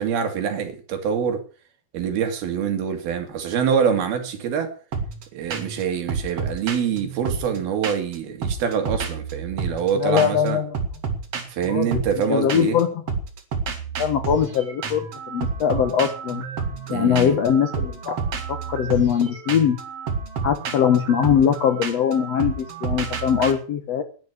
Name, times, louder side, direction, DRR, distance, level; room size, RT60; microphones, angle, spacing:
voice 1, 0.0-1.4 1.9-4.7 5.3-10.6 11.5-12.8 16.9-17.4, right 7 dB, 85° right, 4.1 m, -25 dB
sound 1, 4.9-5.2 5.5-5.8 6.1-8.2 8.4-9.9 10.2-10.5 10.7-12.8 13.1-23.5, right 5 dB, 45° right, 2.6 m, -30 dB
voice 2, 9.9-10.8 11.7-12.0 12.3-13.0 14.0-16.4 16.9-18.2 18.5-19.8 20.4-24.0, left 8 dB, 65° left, 1.7 m, -21 dB
11.0 x 10.5 x 8.1 m
omnidirectional pair, 4.2 m